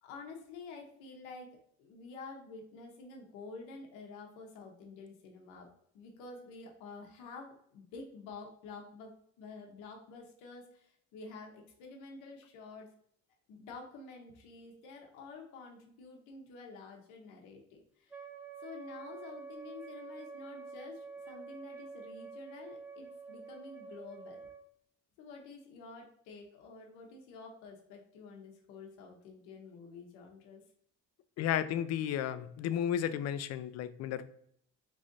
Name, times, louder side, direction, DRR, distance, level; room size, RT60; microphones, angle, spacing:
voice 1, 0.0-1.5 1.8-5.7 5.9-9.1 9.4-12.9 13.5-18.2 18.6-24.5 25.2-30.6, left 4 dB, 90° left, 1 dB, 0.8 m, -49 dB
Wind instrument woodwind instrument, 18.1-24.7, right 4 dB, 5° right, 0.4 m, -48 dB
voice 2, 31.4-34.3, left 10 dB, 60° left, 13 dB, 0.4 m, -33 dB
3.2 x 2.5 x 3.8 m, 0.66 s
supercardioid pair, 80°, 30 cm